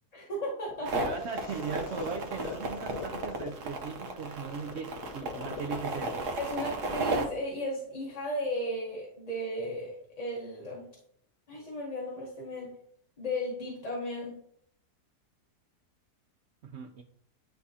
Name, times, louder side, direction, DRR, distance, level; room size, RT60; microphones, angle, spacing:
voice 1, 0.1-1.1 6.4-10.8 11.5-12.7 13.2-14.3, left 1 dB, 30° left, -4 dB, 1.0 m, -35 dB
sound 1, 0.7-8.7, left 7 dB, 85° left, 1.2 m, -44 dB
sound 2, 0.9-7.2, right 3 dB, 85° right, 1.5 m, -34 dB
voice 2, 1.0-6.3 16.6-17.0, right 5 dB, 65° right, 5 dB, 0.7 m, -38 dB
9.7 x 3.5 x 2.8 m, 0.69 s
omnidirectional pair, 1.6 m